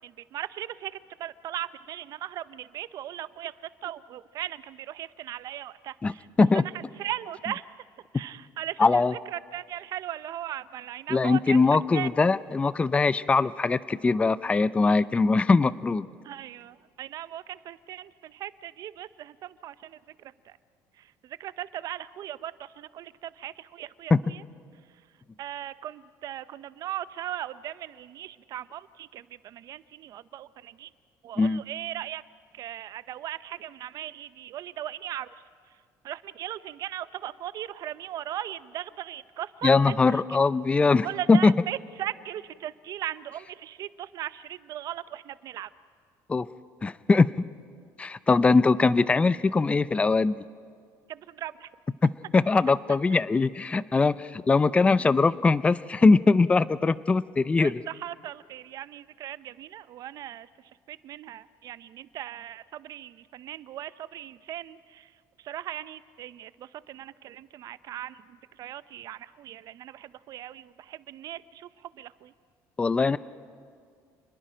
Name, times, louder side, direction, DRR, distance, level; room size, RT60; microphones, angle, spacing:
voice 1, 0.0-6.3 6.5-7.7 8.1-11.6 11.9-12.1 15.0-15.1 16.2-20.6 20.9-24.4 25.4-30.9 31.2-32.2 32.5-35.3 36.0-40.4 41.0-45.7 51.1-51.7 53.1-53.2 57.6-65.1 65.4-72.3, right 12 dB, 55° right, 16 dB, 0.6 m, -38 dB
voice 2, 8.8-9.1 11.1-16.1 24.1-24.2 31.4-31.6 39.6-41.5 46.3-46.5 46.8-47.3 48.0-50.3 52.3-57.8 72.8-73.2, left 4 dB, 15° left, 17 dB, 0.5 m, -21 dB
29.0 x 21.0 x 5.1 m, 2.1 s
cardioid pair, 125°, 7 cm